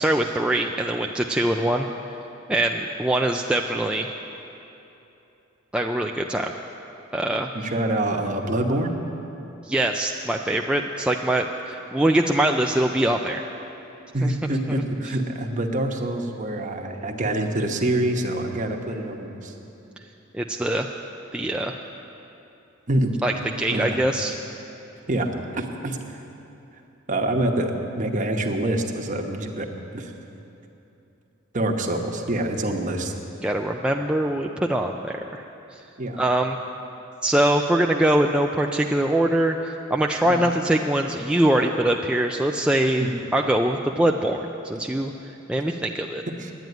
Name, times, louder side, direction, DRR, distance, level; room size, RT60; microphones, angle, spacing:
voice 1, 0.0-1.9 2.5-4.1 5.7-6.5 7.1-7.5 9.6-13.5 14.2-14.3 20.3-20.9 21.3-21.7 23.2-24.3 33.4-35.4 35.7-35.8 36.2-36.6 37.2-43.1 43.3-46.2, right 1 dB, 5° right, 1 dB, 0.3 m, -23 dB
voice 2, 7.5-9.0 14.1-19.5 22.9-23.1 23.7-24.0 25.1-25.3 25.5-26.0 27.1-29.7 29.9-30.1 31.5-33.1 36.0-36.2 40.2-40.5 43.0-43.1 46.4-46.5, right 1 dB, 40° right, 3 dB, 1.0 m, -26 dB
11.0 x 9.1 x 9.3 m, 2.9 s
head